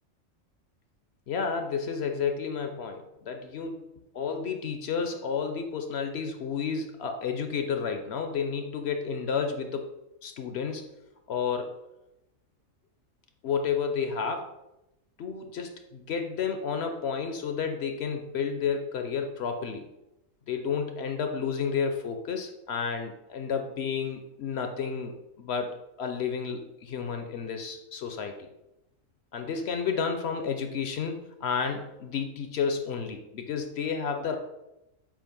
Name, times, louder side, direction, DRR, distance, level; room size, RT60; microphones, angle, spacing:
voice 1, 1.3-3.8 4.1-9.9 10.2-10.9 11.3-11.7 13.4-14.5 15.2-19.9 20.5-28.5 29.3-34.4, left 6 dB, 60° left, 6 dB, 0.8 m, -31 dB
7.5 x 2.5 x 5.2 m, 0.93 s
omnidirectional pair, 1.4 m